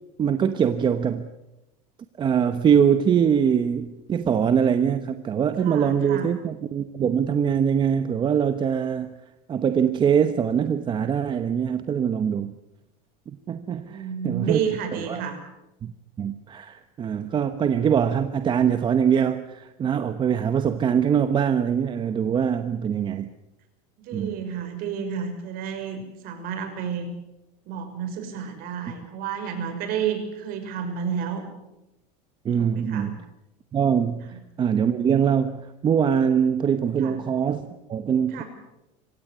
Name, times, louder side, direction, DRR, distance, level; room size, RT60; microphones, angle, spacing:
voice 1, 0.2-1.3 2.2-9.1 9.5-12.5 13.5-14.6 15.0-15.2 15.8-15.9 16.2-23.3 24.1-24.4 32.4-33.2 33.7-38.4, right 8 dB, 25° right, 10 dB, 1.0 m, -23 dB
voice 2, 5.6-6.3 13.8-15.4 24.0-27.1 27.7-31.4 32.6-33.1 34.3-34.4 37.0-37.2 38.3-38.4, right 7 dB, 50° right, 6 dB, 5.9 m, -31 dB
25.5 x 17.0 x 8.3 m, 0.94 s
supercardioid pair, 150°, 19 cm